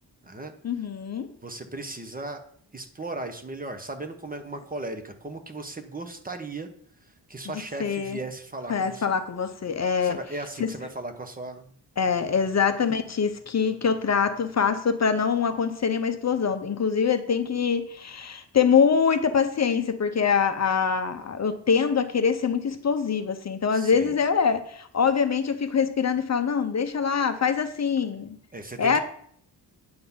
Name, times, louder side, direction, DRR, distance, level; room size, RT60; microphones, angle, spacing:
voice 1, 0.6-1.3 7.8-8.2 8.7-10.2 10.6-10.7 12.0-28.4 28.8-29.0, left 6 dB, 40° left, 8 dB, 0.6 m, -24 dB
voice 2, 1.4-2.4 2.7-6.7 7.3-9.1 10.0-11.7 12.3-12.4 23.7-24.2 28.5-29.0, right 2 dB, 20° right, 6 dB, 0.8 m, -37 dB
9.5 x 3.9 x 7.0 m, 0.63 s
wide cardioid pair, 140°, 42 cm